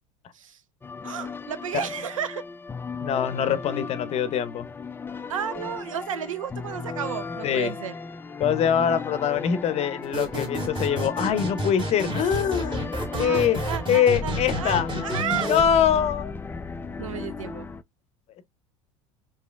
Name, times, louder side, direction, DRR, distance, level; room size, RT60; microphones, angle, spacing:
sound 1, 0.8-17.8, left 5 dB, 15° left, 0.3 m, -36 dB
voice 1, 1.0-2.4 5.3-7.9 13.1-15.5 17.0-17.7, right 9 dB, 85° right, 0.4 m, -32 dB
voice 2, 3.0-4.7 7.4-7.8 8.4-13.6 13.9-14.9 15.5-16.3, left 8 dB, 40° left, 0.7 m, -23 dB
sound 2, 10.0-15.6, equal, 30° right, 1.9 m, -31 dB
4.9 x 2.7 x 2.3 m
hypercardioid pair, 75°, 17 cm